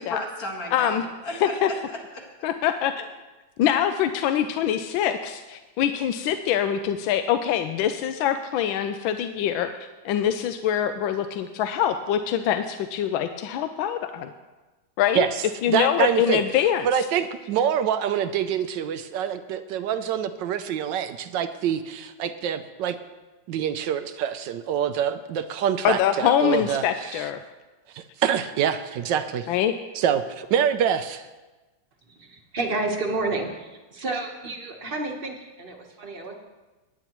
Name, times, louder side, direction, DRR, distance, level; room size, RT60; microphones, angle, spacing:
voice 1, 0.0-2.3, left 1 dB, 50° left, 0 dB, 2.2 m, -35 dB
voice 2, 0.7-1.0 1.4-1.7 2.4-3.1 3.6-9.7 10.0-14.3 15.0-15.3 15.6-16.8 25.8-27.4 29.5-29.7, left 10 dB, 80° left, 8 dB, 1.3 m, -24 dB
voice 3, 15.7-16.4 16.8-23.0 23.5-27.2 27.9-29.5 29.9-31.3, right 9 dB, 75° right, 10 dB, 1.2 m, -25 dB
voice 4, 32.1-36.3, right 3 dB, 35° right, 2 dB, 1.1 m, -30 dB
17.5 x 9.9 x 3.0 m, 1.2 s
omnidirectional pair, 2.2 m